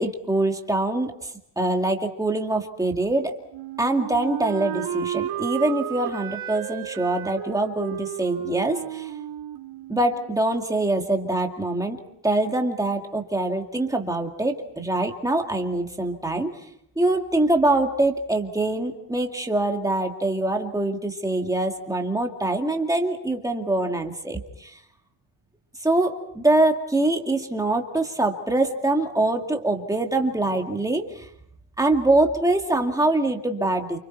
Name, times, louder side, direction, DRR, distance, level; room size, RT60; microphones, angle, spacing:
voice 1, 0.0-3.4 3.8-9.1 9.9-12.0 12.2-16.5 17.0-24.8 25.8-31.3 31.8-34.0, right 2 dB, 5° right, 3 dB, 2.3 m, -24 dB
Wind instrument woodwind instrument, 3.5-10.3, right 11 dB, 85° right, 2.6 m, -33 dB
29.5 x 27.0 x 4.6 m, 0.74 s
cardioid pair, 160°, 48 cm